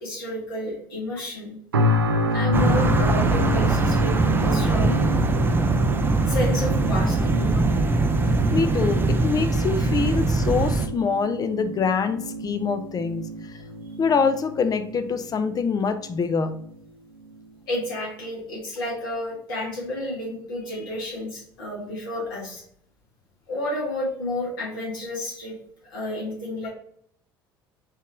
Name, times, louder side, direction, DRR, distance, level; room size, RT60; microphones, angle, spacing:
voice 1, 0.0-1.5 2.3-5.0 6.3-7.7 17.7-22.6 23.5-25.6 25.9-26.7, left 1 dB, 75° left, -4 dB, 1.8 m, -31 dB
sound 1, 1.7-16.7 17.2-17.4, left 1 dB, 85° right, 0.4 m, -29 dB
sound 2, 2.5-10.9, right 3 dB, 20° right, 0.5 m, -22 dB
voice 2, 8.5-13.3 14.0-16.6, left 5 dB, 35° left, 10 dB, 0.5 m, -24 dB
4.5 x 3.0 x 3.4 m, 0.65 s
figure-of-eight pair, 60°, 12 cm